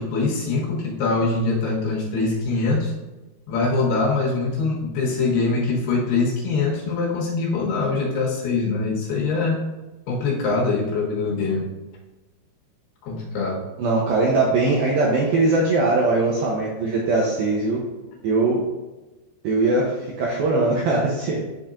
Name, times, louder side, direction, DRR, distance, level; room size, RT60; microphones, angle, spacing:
voice 1, 0.0-2.9 3.5-9.6 10.1-11.7 13.0-13.6, left 3 dB, 70° left, -3 dB, 3.0 m, -23 dB
voice 2, 13.8-17.8 18.2-18.6 19.4-21.4, right 3 dB, 85° right, -2 dB, 2.1 m, -21 dB
10.5 x 4.4 x 2.5 m, 1.1 s
omnidirectional pair, 5.3 m